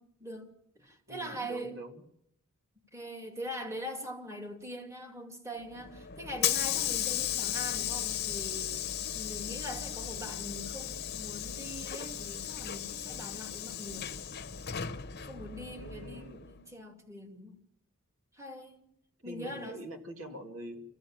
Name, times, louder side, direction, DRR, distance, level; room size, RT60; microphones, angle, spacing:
voice 1, 0.0-1.8 2.9-14.3 15.2-17.6 18.3-18.8 19.2-19.8, equal, 15° right, 2.5 m, -42 dB
voice 2, 1.1-2.0 15.8-16.5 19.2-20.8, right 1 dB, 70° right, 2.4 m, -44 dB
Hiss / Sliding door, 5.7-16.6, left 10 dB, 50° left, 0.9 m, -35 dB
26.5 x 15.5 x 7.3 m
head